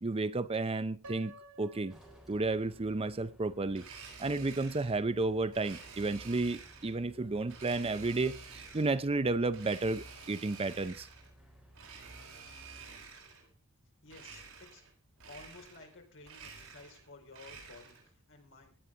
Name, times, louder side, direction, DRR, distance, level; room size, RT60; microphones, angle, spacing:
voice 1, 0.0-1.9 2.3-3.9 4.2-11.1, right 3 dB, 25° right, 0.5 m, -32 dB
Piano, 1.0-3.0, right 1 dB, 85° right, 1.6 m, -53 dB
sound 1, 1.9-12.8, right 1 dB, ahead, 4.2 m, -59 dB
Domestic sounds home sounds, 3.7-5.0 5.5-7.0 7.5-9.0 9.5-11.3 11.7-13.5 14.1-14.9 15.2-15.9 16.2-18.1, right 5 dB, 70° right, 6.7 m, -50 dB
voice 2, 14.0-14.8 15.3-18.8, left 3 dB, 60° left, 4.8 m, -54 dB
18.0 x 11.0 x 3.8 m
head